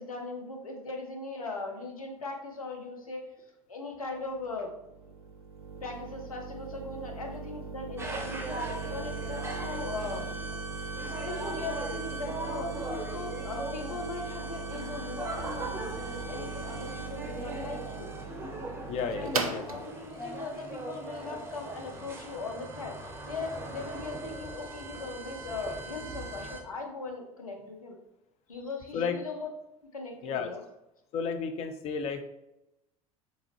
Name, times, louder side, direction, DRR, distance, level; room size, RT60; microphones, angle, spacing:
voice 1, 0.0-3.2 3.7-4.7 5.8-10.3 11.0-18.1 19.2-28.0 28.5-29.5 29.9-30.6, left 3 dB, 80° left, 2 dB, 0.6 m, -39 dB
sound 1, 4.3-21.9, right 5 dB, 80° right, 0.4 m, -39 dB
sound 2, 8.0-26.6, right 2 dB, 15° right, 0.7 m, -39 dB
voice 2, 18.9-19.8 28.9-29.2 30.2-30.5 31.1-32.2, left 6 dB, 35° left, 7 dB, 0.4 m, -32 dB
3.6 x 2.7 x 3.0 m, 0.87 s
figure-of-eight pair, 70°, 18 cm